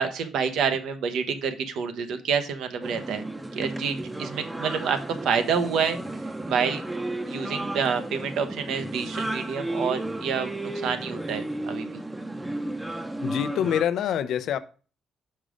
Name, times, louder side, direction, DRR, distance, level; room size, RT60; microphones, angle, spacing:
voice 1, 0.0-3.2 3.5-6.0 6.5-6.8 7.3-12.0, right 6 dB, 80° right, 0.9 m, -28 dB
sound 1, 2.8-13.8, right 1 dB, 10° right, 0.7 m, -33 dB
voice 2, 13.2-14.6, left 9 dB, 75° left, 0.5 m, -25 dB
5.4 x 5.0 x 5.0 m
cardioid pair, 90°, 0 cm